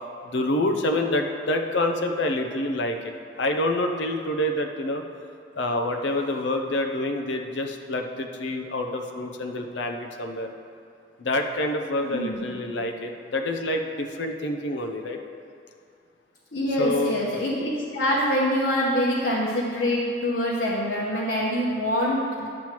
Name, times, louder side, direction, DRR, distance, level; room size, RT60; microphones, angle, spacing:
voice 1, 0.3-3.1 3.4-5.0 5.5-10.5 11.2-15.2 16.8-17.1, left 1 dB, 85° left, 4 dB, 0.6 m, -27 dB
voice 2, 12.0-12.5 16.5-22.5, equal, 65° left, -7 dB, 1.1 m, -25 dB
10.5 x 7.5 x 3.0 m, 2.4 s
head